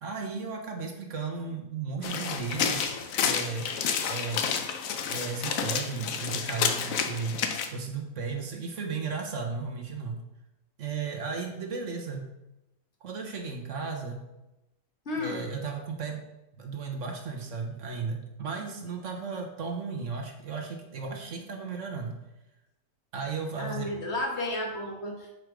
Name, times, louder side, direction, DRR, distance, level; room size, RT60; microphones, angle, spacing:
voice 1, 0.0-3.0 3.2-3.7 4.1-4.5 5.1-7.4 7.7-10.2 10.8-12.3 13.0-14.2 15.1-16.2 16.5-22.2 23.1-23.9, right 4 dB, 60° right, 2 dB, 1.3 m, -35 dB
sound 1, 2.0-7.7, left 6 dB, 70° left, 1.1 m, -30 dB
voice 2, 15.0-15.5 23.6-25.3, left 2 dB, 50° left, 0 dB, 1.6 m, -32 dB
7.9 x 4.7 x 5.0 m, 0.95 s
omnidirectional pair, 1.5 m